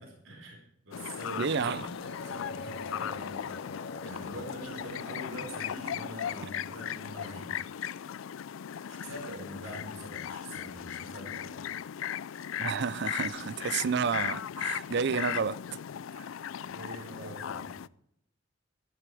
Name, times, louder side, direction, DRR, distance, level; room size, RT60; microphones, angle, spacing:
voice 1, 0.0-1.6 2.0-3.6 4.0-7.5 8.9-11.6 16.6-17.7, right 1 dB, 85° right, 4.5 m, -44 dB
sound 1, 0.9-17.9, left 9 dB, 85° left, 0.4 m, -37 dB
voice 2, 1.4-1.9 12.6-15.6 16.2-16.3, right 6 dB, 60° right, 0.5 m, -30 dB
sound 2, 1.6-5.7, left 1 dB, 60° left, 2.1 m, -46 dB
14.0 x 11.5 x 4.9 m
head